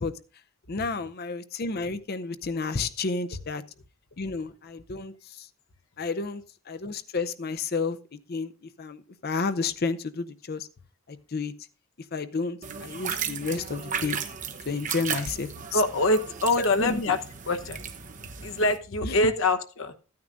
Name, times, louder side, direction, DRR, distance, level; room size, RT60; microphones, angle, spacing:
voice 1, 0.7-3.6 4.2-5.5 6.0-8.5 8.8-10.7 11.1-11.5 12.1-14.2 14.7-15.8 16.6-17.1 19.0-19.3, left 4 dB, 45° left, 0.6 m, -31 dB
sound 1, 12.6-18.8, right 7 dB, 35° right, 0.9 m, -35 dB
voice 2, 15.7-17.2 17.5-17.8 18.4-19.9, left 2 dB, 65° left, 1.0 m, -24 dB
14.0 x 9.5 x 2.5 m
head